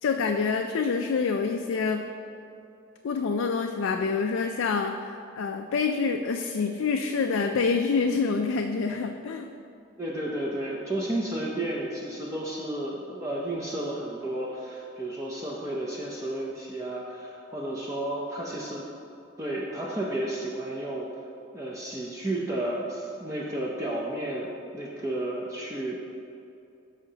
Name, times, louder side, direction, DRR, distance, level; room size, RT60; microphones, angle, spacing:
voice 1, 0.0-2.1 3.0-9.5, left 5 dB, 75° left, 4 dB, 0.4 m, -27 dB
voice 2, 10.0-18.9 19.4-21.2 21.5-24.5 24.7-26.2, right 1 dB, 15° right, -4 dB, 0.5 m, -32 dB
13.0 x 5.0 x 2.8 m, 2.7 s
head